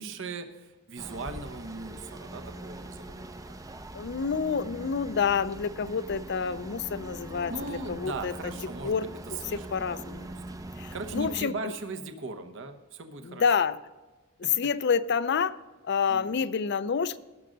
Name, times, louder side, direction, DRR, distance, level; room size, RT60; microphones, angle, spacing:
voice 1, 0.0-3.6 6.4-6.7 7.5-10.6 10.9-13.4 14.4-14.5 16.1-16.4, right 3 dB, 60° right, 7 dB, 1.0 m, -39 dB
sound 1, 1.0-11.4, right 1 dB, 15° right, 0.5 m, -42 dB
voice 2, 3.9-8.3 8.8-10.3 10.8-11.7 13.2-13.8 14.6-15.6 15.8-17.2, left 6 dB, 50° left, 15 dB, 0.5 m, -28 dB
18.0 x 6.4 x 3.9 m, 1.2 s
head